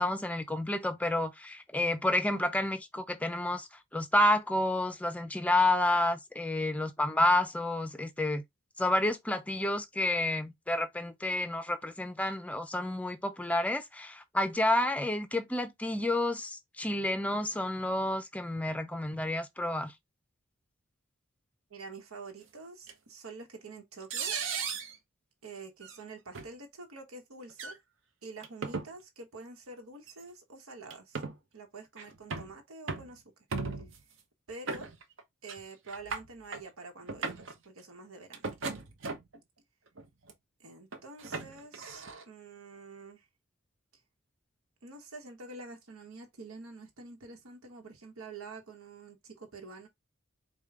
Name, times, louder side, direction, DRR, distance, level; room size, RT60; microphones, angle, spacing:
voice 1, 0.0-8.4 8.8-19.9, left 1 dB, 5° left, 0.5 m, -30 dB
voice 2, 21.7-24.3 25.4-27.8 28.2-31.2 31.5-33.2 34.5-34.9 35.4-38.5 40.6-43.3 44.8-49.9, right 3 dB, 90° right, 1.1 m, -47 dB
sound 1, 22.9-23.0 24.1-24.9 25.8-26.0 26.3-26.5 27.5-27.8 28.4-28.9 30.1-30.2 30.9-31.4 32.0-32.5 32.9-33.1 33.5-34.0 34.7-35.2 35.5-35.6 35.9-36.6 37.0-37.5 38.3-39.4 40.0-40.3 40.9-42.2, right 4 dB, 65° right, 0.8 m, -37 dB
5.0 x 2.2 x 3.5 m
head